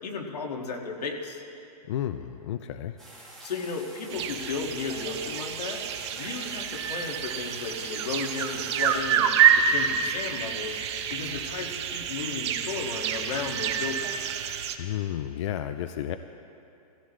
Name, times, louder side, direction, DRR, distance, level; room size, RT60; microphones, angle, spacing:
voice 1, 0.0-1.4 3.4-9.3 9.6-10.8 11.1-14.3, left 4 dB, 90° left, 1 dB, 2.2 m, -34 dB
voice 2, 1.9-2.9 14.8-16.2, left 11 dB, 50° left, 10 dB, 0.5 m, -32 dB
sound 1, 3.0-9.0, right 1 dB, 5° left, 3.8 m, -47 dB
sound 2, 4.1-14.8, right 8 dB, 45° right, 0.9 m, -27 dB
19.5 x 16.0 x 3.2 m, 2.7 s
hypercardioid pair, 165°, 20 cm